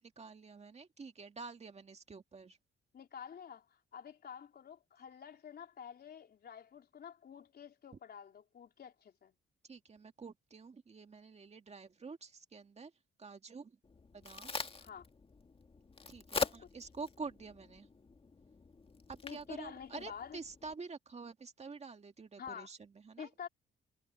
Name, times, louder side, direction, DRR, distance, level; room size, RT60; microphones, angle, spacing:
voice 1, 0.2-2.6 9.7-12.9 13.2-13.8 14.1-14.5 16.1-17.9 19.1-23.3, right 4 dB, 35° right, 2.1 m, -48 dB
voice 2, 2.9-9.3 14.8-15.1 16.3-16.7 19.2-20.4 22.4-22.7 23.2-23.5, left 7 dB, 55° left, 4.0 m, -49 dB
Crack, 13.8-20.7, left 4 dB, 30° left, 2.0 m, -44 dB
cardioid pair, 90°, 20 cm